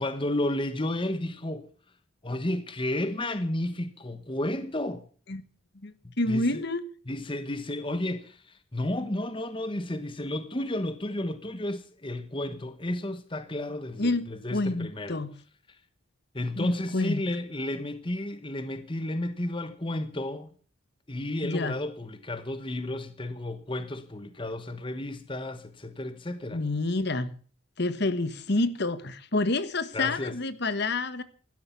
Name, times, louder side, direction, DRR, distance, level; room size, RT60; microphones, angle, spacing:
voice 1, 0.0-1.7 2.2-5.1 6.0-6.6 7.1-15.2 16.3-20.5 21.1-26.6 29.9-30.4, left 1 dB, 25° left, 1.1 m, -32 dB
voice 2, 5.7-6.8 14.0-15.3 16.5-17.2 21.4-21.7 26.5-27.3 27.8-31.2, left 2 dB, 50° left, 1.4 m, -28 dB
16.0 x 12.5 x 7.0 m
head